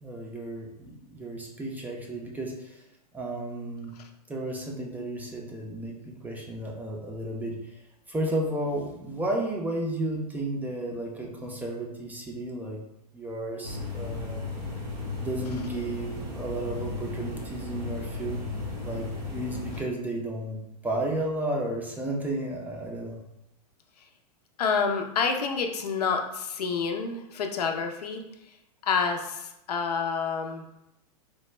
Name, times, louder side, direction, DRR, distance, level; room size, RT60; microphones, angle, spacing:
voice 1, 0.0-2.9 3.1-4.0 4.3-7.8 8.1-12.8 13.1-14.4 15.1-18.5 18.8-20.6 20.8-23.2, right 1 dB, 10° right, -1 dB, 0.4 m, -33 dB
sound 1, 13.6-19.8, left 3 dB, 85° right, 1.2 m, -35 dB
voice 2, 24.6-28.5 28.8-30.7, left 5 dB, 75° left, 4 dB, 0.5 m, -28 dB
3.3 x 2.2 x 3.1 m, 0.86 s
hypercardioid pair, 115°, 20 cm